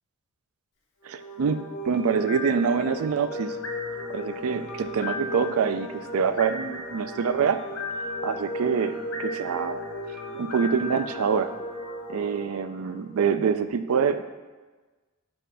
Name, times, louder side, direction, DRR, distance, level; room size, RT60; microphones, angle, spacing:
sound 1, 1.0-13.2, left 1 dB, 90° left, 1.0 m, -35 dB
voice 1, 1.0-3.6 4.1-7.6 8.2-9.8 10.3-11.5 12.1-14.2, right 6 dB, 85° right, 11 dB, 0.4 m, -25 dB
Singing, 1.7-12.5, equal, 60° left, 1.3 m, -49 dB
7.2 x 3.3 x 5.6 m, 1.3 s
head